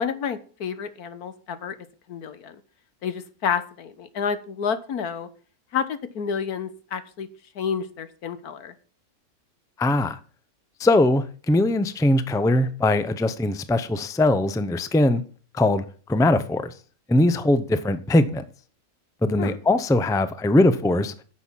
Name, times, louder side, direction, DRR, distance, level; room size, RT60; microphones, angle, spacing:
voice 1, 0.0-1.7 2.1-2.5 3.0-5.3 5.7-7.3 7.5-8.7 19.4-19.6, left 7 dB, 85° left, 1.6 m, -29 dB
voice 2, 9.8-10.2 10.8-15.2 15.5-15.8 16.1-16.7 17.1-18.4 19.2-21.1, left 1 dB, 5° left, 0.4 m, -21 dB
10.0 x 7.1 x 7.3 m
omnidirectional pair, 1.6 m